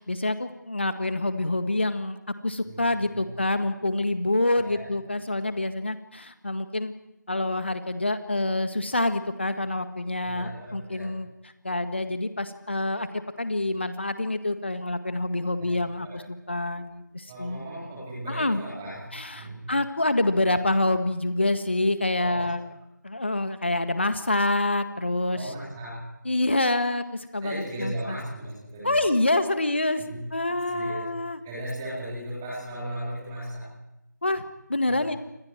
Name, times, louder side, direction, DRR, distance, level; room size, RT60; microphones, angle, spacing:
voice 1, 0.0-2.2 2.4-6.9 7.3-11.3 11.6-17.6 18.3-18.6 19.1-22.6 23.0-25.4 26.3-27.0 27.3-27.9 28.8-30.0 30.3-31.4 34.2-34.4 34.7-35.2, left 2 dB, 35° left, 9 dB, 1.8 m, -26 dB
voice 2, 4.6-4.9 10.2-11.1 15.6-15.7 16.0-16.2 17.3-19.7 22.1-22.5 25.3-26.0 27.4-29.0 30.0-30.2 30.7-31.0 31.4-33.7 34.8-35.0, right 1 dB, 5° right, -7 dB, 3.7 m, -36 dB
29.5 x 26.5 x 4.7 m, 0.88 s
figure-of-eight pair, 170°, 10 cm